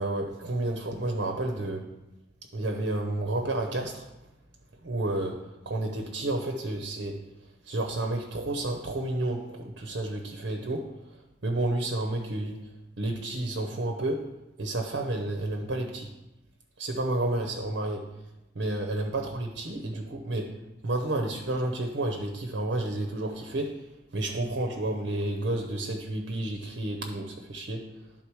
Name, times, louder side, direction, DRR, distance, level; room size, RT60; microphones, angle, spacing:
voice 1, 0.0-1.9 2.5-4.0 4.8-7.2 7.6-10.9 11.4-12.7 13.0-14.3 14.6-16.1 16.8-18.1 18.5-23.8 24.1-27.9, right 2 dB, 60° right, 2 dB, 0.8 m, -31 dB
11.5 x 3.8 x 4.7 m, 0.99 s
head